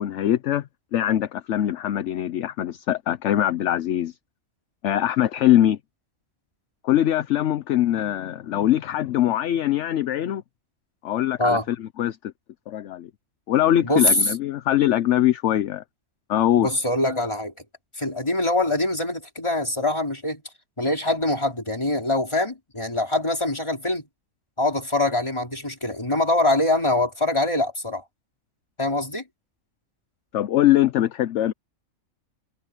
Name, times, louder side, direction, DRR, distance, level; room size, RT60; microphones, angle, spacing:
voice 1, 0.0-4.1 4.8-5.8 6.8-10.4 11.0-12.2 12.7-13.1 13.5-15.8 16.3-16.7 30.3-31.5, left 12 dB, 65° left, 0.9 m, -22 dB
voice 2, 16.6-17.5 18.0-20.4 20.8-24.0 24.6-28.0 28.8-29.2, left 2 dB, 20° left, 3.6 m, -23 dB
omnidirectional pair, 1.4 m